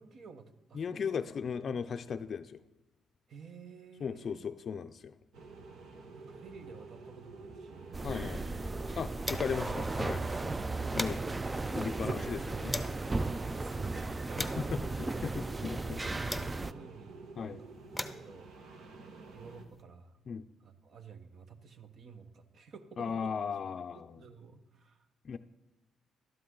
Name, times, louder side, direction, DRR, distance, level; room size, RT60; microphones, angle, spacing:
voice 1, 0.0-1.8 3.3-4.4 6.2-8.5 10.5-10.7 13.2-14.8 16.0-18.5 19.3-20.2 20.6-23.6 23.9-25.1, right 5 dB, 60° right, 9 dB, 1.1 m, -53 dB
voice 2, 0.7-2.6 4.0-5.1 8.0-8.4 9.0-10.3 10.9-11.2 11.7-12.8 14.7-16.0 17.4-17.6 20.3-20.4 23.0-24.1 25.2-25.4, left 6 dB, 50° left, 9 dB, 0.4 m, -37 dB
sound 1, 5.3-19.6, right 3 dB, 75° right, 1.4 m, -50 dB
sound 2, 7.9-16.7, right 3 dB, 20° right, 0.4 m, -35 dB
sound 3, 8.0-9.8 10.1-10.2 10.5-13.1 13.7-16.9 17.6-19.8, left 1 dB, 5° left, 0.8 m, -43 dB
12.5 x 11.0 x 3.8 m, 0.99 s
cardioid pair, 90°, 0 cm